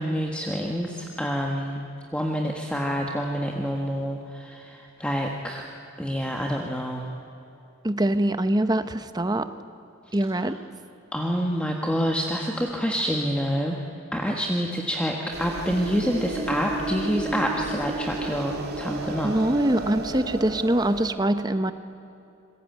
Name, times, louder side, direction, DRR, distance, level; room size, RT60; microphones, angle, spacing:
voice 1, 0.0-1.8 2.1-5.7 6.0-7.0 10.4-10.5 11.1-13.8 14.1-19.3, equal, 5° left, 0 dB, 1.4 m, -27 dB
voice 2, 7.8-9.5 10.1-10.6 19.2-21.7, right 1 dB, 20° right, 10 dB, 0.9 m, -23 dB
sound 1, 15.3-21.1, right 2 dB, 50° right, 2.5 m, -33 dB
27.0 x 21.5 x 9.3 m, 2.8 s
head